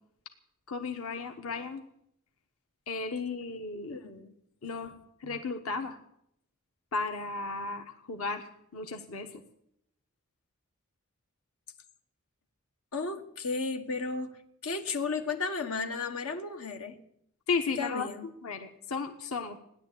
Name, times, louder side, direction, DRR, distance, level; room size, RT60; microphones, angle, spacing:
voice 1, 0.7-1.8 2.9-4.0 4.6-4.9 5.2-6.0 6.9-9.3 17.5-18.1 18.4-19.6, left 4 dB, 70° left, 5 dB, 1.3 m, -34 dB
voice 2, 3.8-4.4 12.9-14.4 14.6-17.0 17.8-18.3, left 4 dB, 90° left, 5 dB, 1.5 m, -34 dB
16.0 x 10.5 x 8.5 m, 0.75 s
head